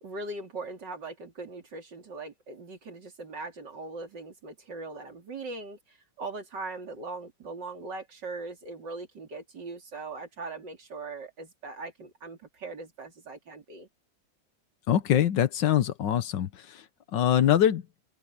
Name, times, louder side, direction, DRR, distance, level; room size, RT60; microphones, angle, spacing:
voice 1, 0.0-13.9, right 3 dB, 80° right, 3.9 m, -40 dB
voice 2, 14.9-16.8 17.1-17.8, left 10 dB, 90° left, 1.7 m, -23 dB
open air
omnidirectional pair, 1.9 m